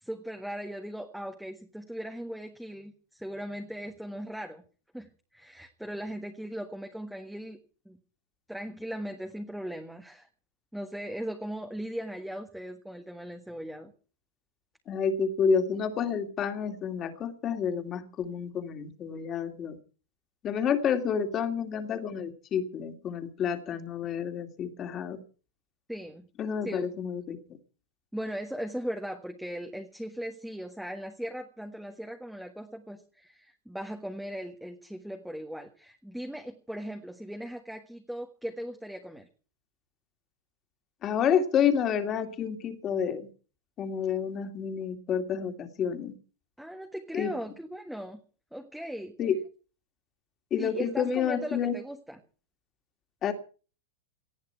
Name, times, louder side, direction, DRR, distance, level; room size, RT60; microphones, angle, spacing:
voice 1, 0.0-4.6 4.9-7.6 7.8-8.0 8.5-10.3 10.7-13.9 25.9-26.3 26.6-26.9 28.1-39.3 46.6-48.2 48.5-49.1 50.6-52.2, equal, ahead, 4 dB, 1.4 m, -38 dB
voice 2, 14.9-19.8 20.4-25.2 26.4-27.4 41.0-43.3 43.8-46.2 47.1-47.3 49.2-49.4 50.5-51.8 53.2-53.3, left 7 dB, 25° left, 8 dB, 2.5 m, -29 dB
19.0 x 14.0 x 4.6 m, 0.38 s
supercardioid pair, 155°, 0 cm